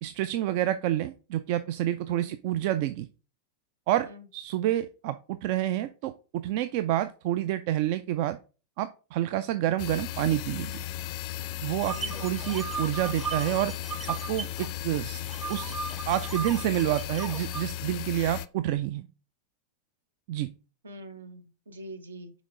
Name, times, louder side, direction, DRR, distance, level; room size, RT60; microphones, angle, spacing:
voice 1, 0.0-3.1 3.9-8.4 8.8-10.8 11.6-13.7 14.1-15.2 15.5-15.7 16.1-19.1 20.3-20.5, right 13 dB, 45° right, 12 dB, 0.3 m, -28 dB
sound 1, 9.8-18.5, left 12 dB, 45° left, 0.4 m, -36 dB
sound 2, 11.8-14.7 14.9-17.6, right 5 dB, 20° right, 0.7 m, -37 dB
voice 2, 20.8-22.3, right 1 dB, 70° right, 8 dB, 1.0 m, -44 dB
6.2 x 4.2 x 3.7 m, 0.35 s
figure-of-eight pair, 90°, 0 cm